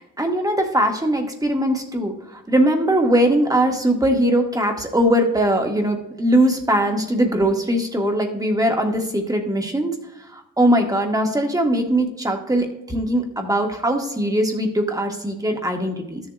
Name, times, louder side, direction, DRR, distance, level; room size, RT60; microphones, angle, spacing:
voice 1, 0.0-2.1 2.5-9.9 10.3-16.2, right 1 dB, 10° right, 3 dB, 1.5 m, -20 dB
13.0 x 7.3 x 2.4 m, 0.87 s
cardioid pair, 90°, 30 cm